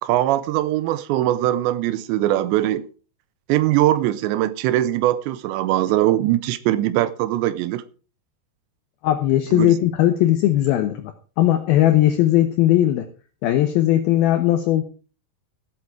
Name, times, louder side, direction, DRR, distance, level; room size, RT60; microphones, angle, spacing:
voice 1, 0.0-2.9 3.5-7.8 9.5-9.8, right 14 dB, 85° right, 2.9 m, -21 dB
voice 2, 9.0-13.1 13.4-14.8, left 13 dB, 75° left, 2.4 m, -18 dB
16.0 x 8.3 x 4.7 m
omnidirectional pair, 5.0 m